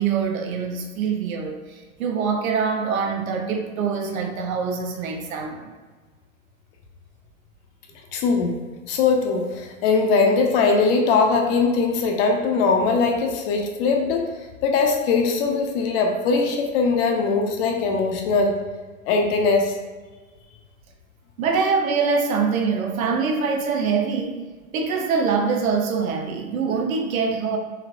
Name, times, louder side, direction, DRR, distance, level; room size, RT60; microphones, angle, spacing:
voice 1, 0.0-1.6 2.0-5.7 21.4-24.4 24.7-27.6, right 5 dB, 80° right, 3 dB, 0.7 m, -24 dB
voice 2, 8.1-8.5 8.9-14.3 14.6-18.6 19.1-19.7, left 4 dB, 45° left, 2 dB, 0.5 m, -21 dB
4.0 x 2.0 x 2.4 m, 1.3 s
hypercardioid pair, 115°, 41 cm